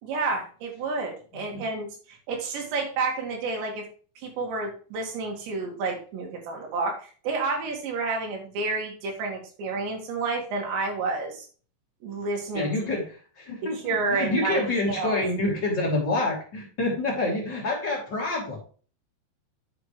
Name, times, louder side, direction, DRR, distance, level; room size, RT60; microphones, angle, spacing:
voice 1, 0.0-3.8 4.2-11.5 12.0-12.9 13.6-15.2, right 3 dB, 70° right, 1 dB, 4.2 m, -30 dB
voice 2, 12.5-13.8 14.1-18.6, left 2 dB, 30° left, -2 dB, 2.6 m, -27 dB
10.0 x 6.6 x 3.2 m, 0.40 s
omnidirectional pair, 5.4 m